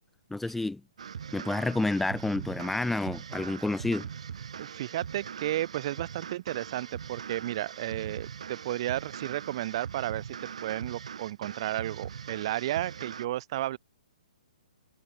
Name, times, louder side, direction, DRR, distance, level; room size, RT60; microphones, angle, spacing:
voice 1, 0.3-0.8 1.3-4.1, left 2 dB, 5° left, 0.8 m, -29 dB
sound 1, 1.0-13.3, right 7 dB, 55° right, 3.3 m, -41 dB
voice 2, 4.6-10.3 10.6-13.8, right 14 dB, 40° right, 2.0 m, -33 dB
figure-of-eight pair, 125°, 4 cm